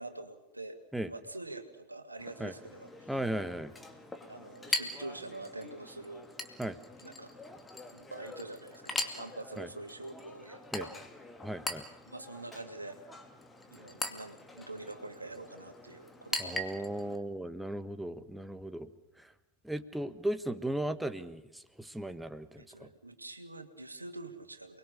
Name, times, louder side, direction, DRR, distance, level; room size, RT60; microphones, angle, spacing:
voice 1, 0.0-0.8 1.1-2.9 4.3-6.3 7.0-7.4 7.9-11.0 12.1-13.0 13.7-16.9 22.6-24.8, right 2 dB, 80° right, 6 dB, 2.4 m, -45 dB
Chink clink, 2.2-17.2, left 2 dB, 10° left, 2.4 m, -42 dB
voice 2, 3.1-3.7 6.6-6.8 9.6-9.7 10.7-10.8 11.4-11.8 16.4-18.9 19.2-19.3 19.6-22.9, right 1 dB, 5° right, 12 dB, 1.4 m, -36 dB
29.0 x 21.5 x 6.8 m, 0.93 s
figure-of-eight pair, 90°, 0 cm